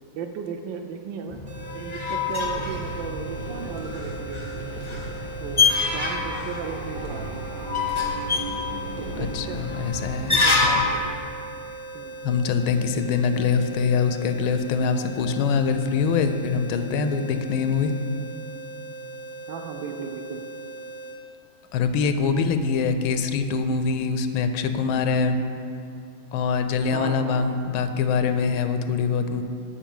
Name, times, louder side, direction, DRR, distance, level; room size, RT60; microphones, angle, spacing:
voice 1, 0.1-1.4 1.7-4.6 5.4-7.7 9.0-9.6 10.3-11.0 11.9-12.2 19.5-20.4 26.9-27.6, right 6 dB, 75° right, 6 dB, 1.3 m, -36 dB
sound 1, 1.3-11.0, left 4 dB, 50° left, 0.3 m, -27 dB
sound 2, 1.5-21.2, right 3 dB, 25° right, 0.7 m, -39 dB
sound 3, 2.3-11.0, right 2 dB, 50° right, 1.6 m, -37 dB
voice 2, 9.2-10.3 12.2-17.9 21.7-25.4 26.3-29.4, left 5 dB, 85° left, 9 dB, 1.4 m, -24 dB
7.1 x 5.4 x 7.1 m, 2.4 s
omnidirectional pair, 2.2 m